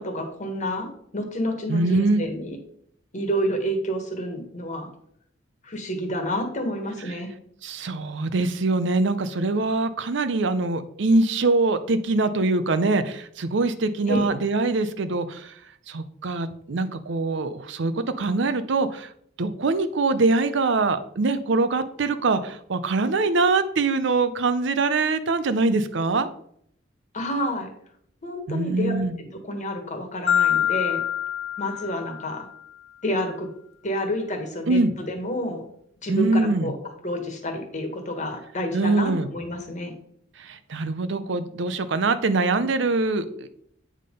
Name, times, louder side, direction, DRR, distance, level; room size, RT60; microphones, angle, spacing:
voice 1, 0.0-2.6 3.1-4.9 5.6-7.3 14.1-14.3 27.1-27.7 28.2-31.0 31.6-32.4 33.0-33.5 33.8-35.6 36.0-39.9, equal, 40° left, 4 dB, 1.4 m, -29 dB
voice 2, 1.7-2.2 7.6-15.5 15.9-19.1 19.4-26.3 28.5-29.2 34.7-34.9 36.1-36.7 38.7-39.3 40.4-43.5, right 3 dB, 70° right, 11 dB, 0.6 m, -23 dB
Marimba xylophone, 30.3-32.5, left 10 dB, 90° left, 0.8 m, -25 dB
8.5 x 3.7 x 5.2 m, 0.67 s
head